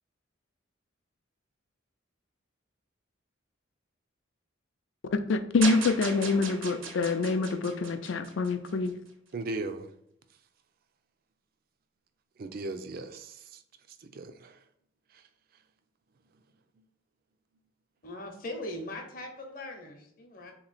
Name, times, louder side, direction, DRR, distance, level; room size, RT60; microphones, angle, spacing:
voice 1, 5.3-9.0, left 3 dB, 65° left, 0.4 m, -26 dB
sound 1, 5.6-8.9, right 4 dB, 80° right, 0.8 m, -37 dB
voice 2, 9.3-9.9 12.4-13.6 14.0-14.6 15.1-15.2, right 2 dB, 45° right, 0.4 m, -37 dB
voice 3, 18.0-20.5, left 1 dB, 45° left, 0.8 m, -40 dB
3.6 x 3.0 x 4.0 m
head